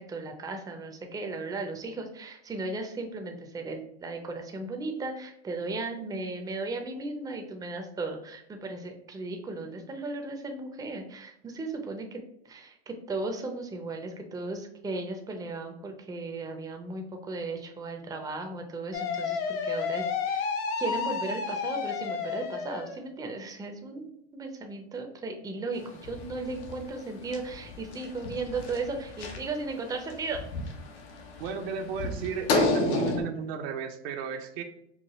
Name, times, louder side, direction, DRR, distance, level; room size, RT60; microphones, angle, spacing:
voice 1, 0.0-20.5 20.8-30.4, right 3 dB, 10° right, 4 dB, 0.5 m, -36 dB
sound 1, 18.9-23.0, left 5 dB, 45° left, 0.6 m, -31 dB
sound 2, 25.8-33.2, left 2 dB, 80° left, 0.9 m, -32 dB
voice 2, 31.4-34.6, right 6 dB, 65° right, 5 dB, 0.6 m, -34 dB
4.7 x 2.1 x 3.0 m, 0.76 s
hypercardioid pair, 95°, 33 cm